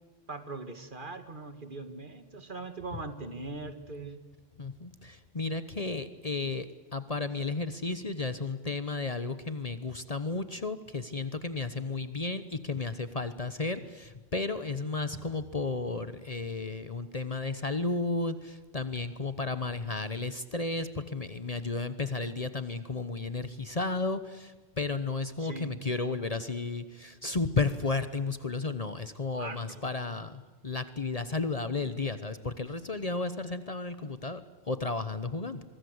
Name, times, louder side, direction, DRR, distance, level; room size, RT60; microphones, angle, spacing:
voice 1, 0.3-4.2 25.4-25.7 29.4-29.9, right 3 dB, 50° right, 8 dB, 2.1 m, -41 dB
voice 2, 4.6-6.7 6.9-35.6, left 3 dB, 35° left, 11 dB, 1.0 m, -33 dB
24.5 x 23.5 x 8.0 m, 1.2 s
omnidirectional pair, 1.1 m